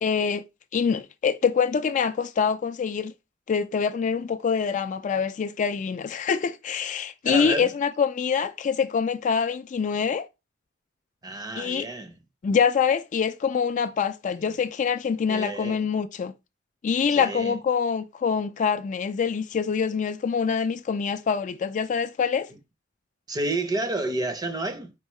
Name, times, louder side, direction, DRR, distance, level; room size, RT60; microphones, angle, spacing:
voice 1, 0.0-0.4 0.7-3.1 3.5-10.3 11.6-11.9 12.4-16.3 16.8-22.5, left 6 dB, 40° left, 0.3 m, -25 dB
voice 2, 7.2-7.7 11.2-12.1 14.4-14.5 15.3-15.8 17.1-17.6 23.3-24.9, right 2 dB, 20° right, 0.6 m, -30 dB
4.5 x 3.5 x 3.0 m
head